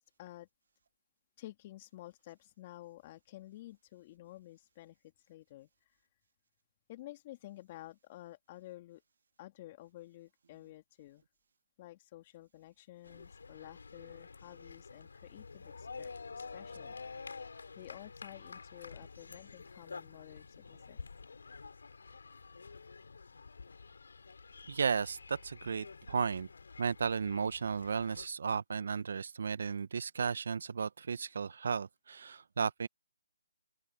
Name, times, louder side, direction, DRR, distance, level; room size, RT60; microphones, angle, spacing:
voice 1, 1.4-5.7 6.9-9.0 9.4-11.2 11.8-16.1 16.4-17.4 17.7-21.0, left 15 dB, 25° left, 2.9 m, -52 dB
sound 1, 13.0-28.3, left 4 dB, 70° left, 3.9 m, -49 dB
voice 2, 24.7-26.5 26.8-32.9, right 6 dB, 55° right, 0.9 m, -34 dB
open air
hypercardioid pair, 160°, 0 cm